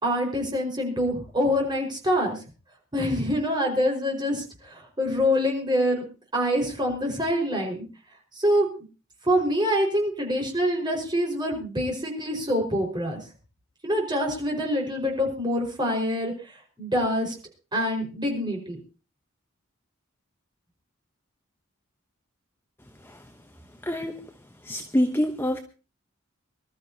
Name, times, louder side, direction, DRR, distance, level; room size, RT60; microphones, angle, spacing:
voice 1, 0.0-2.4 2.9-6.0 6.3-7.9 8.4-8.7 9.2-13.2 13.8-16.3 16.8-17.4 17.7-18.8, equal, 20° right, 0 dB, 5.1 m, -25 dB
voice 2, 23.8-24.2 24.6-25.6, equal, 10° left, 4 dB, 1.0 m, -26 dB
25.0 x 13.0 x 2.9 m, 0.33 s
head